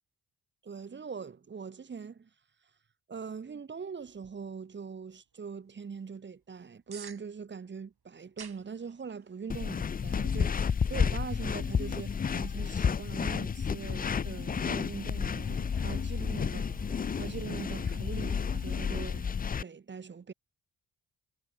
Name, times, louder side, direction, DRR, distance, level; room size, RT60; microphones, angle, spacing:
voice 1, 0.6-2.3 3.1-19.3 19.6-20.3, right 6 dB, 25° right, 0.6 m, -42 dB
sound 1, 4.0-14.6, right 6 dB, 60° right, 4.7 m, -57 dB
sound 2, 9.5-19.6, left 6 dB, 20° left, 0.3 m, -31 dB
sound 3, 14.3-19.4, right 15 dB, 80° right, 0.8 m, -53 dB
supercardioid pair, 40°, 44 cm